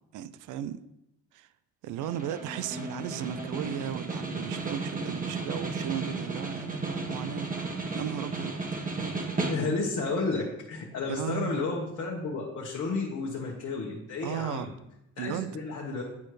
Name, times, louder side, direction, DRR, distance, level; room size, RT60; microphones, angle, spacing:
voice 1, 0.1-0.8 1.3-1.5 1.8-7.5 7.9-8.6 11.1-11.6 14.2-14.7 15.2-15.5, right 11 dB, 85° right, 0.5 m, -35 dB
Snare drum, 2.0-10.0, right 3 dB, 25° right, 1.3 m, -34 dB
voice 2, 9.4-14.6 15.2-16.0, left 3 dB, 55° left, 1.3 m, -32 dB
9.6 x 4.3 x 3.2 m
cardioid pair, 90°, 30 cm